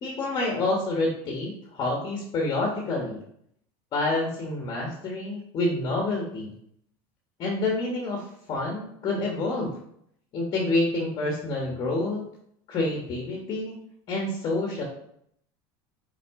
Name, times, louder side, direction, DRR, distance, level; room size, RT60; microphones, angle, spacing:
voice 1, 0.0-3.2 3.9-6.5 7.4-8.2 8.5-9.7 10.3-12.2 12.7-13.7 14.1-14.8, left 2 dB, 35° left, -1 dB, 1.3 m, -28 dB
5.9 x 4.8 x 3.6 m, 0.70 s
cardioid pair, 155°, 12 cm